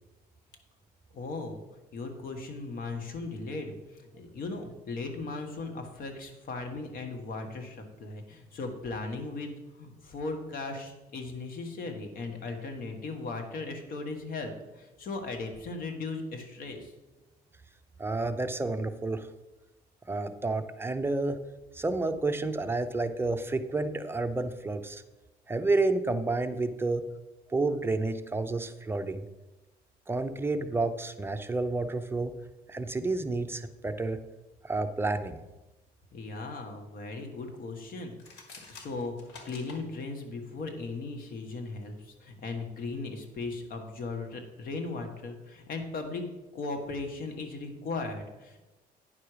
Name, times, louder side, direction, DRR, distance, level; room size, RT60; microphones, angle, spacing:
voice 1, 1.1-1.6 1.9-16.9 36.1-38.2 38.7-39.1 39.4-46.2 46.5-48.6, left 3 dB, 60° left, 5 dB, 1.6 m, -37 dB
voice 2, 18.0-19.3 20.1-21.4 21.7-25.0 25.5-27.0 27.5-29.2 30.1-32.3 32.7-34.2 34.6-35.4, right 3 dB, 15° right, 8 dB, 0.6 m, -30 dB
sound 1, 38.1-39.8, left 4 dB, 85° left, 1.6 m, -48 dB
9.5 x 6.0 x 5.0 m, 1.1 s
cardioid pair, 110°, 17 cm